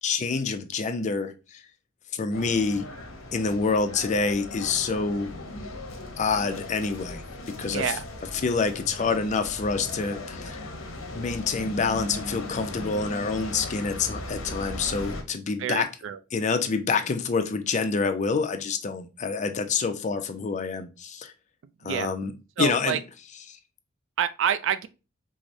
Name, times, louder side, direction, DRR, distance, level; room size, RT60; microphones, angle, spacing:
voice 1, 0.0-1.6 2.1-2.8 3.3-5.3 6.2-7.2 7.6-7.8 8.4-10.7 11.1-15.9 16.3-21.3 21.8-22.3 22.6-23.0 23.5-23.6, left 4 dB, 35° left, 0.4 m, -27 dB
sound 1, 2.3-15.2, left 2 dB, 75° left, 0.7 m, -38 dB
voice 2, 7.6-8.0 15.6-16.2 21.8-22.1 22.6-23.0 24.2-24.9, right 8 dB, 65° right, 0.3 m, -27 dB
4.7 x 2.0 x 2.6 m
head